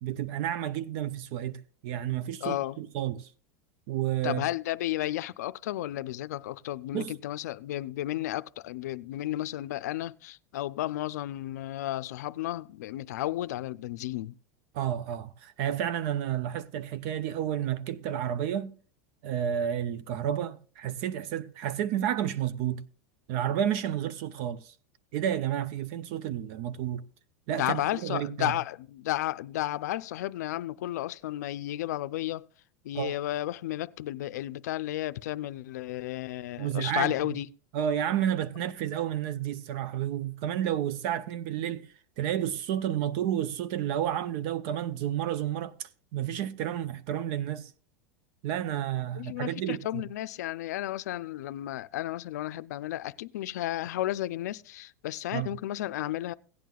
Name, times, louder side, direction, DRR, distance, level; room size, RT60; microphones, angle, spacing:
voice 1, 0.0-3.3 3.9-4.4 6.9-7.1 14.7-18.7 19.2-22.8 23.3-24.7 25.1-27.0 27.5-28.5 32.9-33.2 36.6-37.1 37.7-47.7 48.4-50.0 55.3-55.5, right 10 dB, 55° right, 0.6 m, -31 dB
voice 2, 2.4-2.8 4.2-14.3 27.5-32.5 32.8-37.5 49.1-56.3, left 14 dB, 90° left, 0.4 m, -33 dB
16.5 x 9.2 x 2.3 m
supercardioid pair, 150°, 9 cm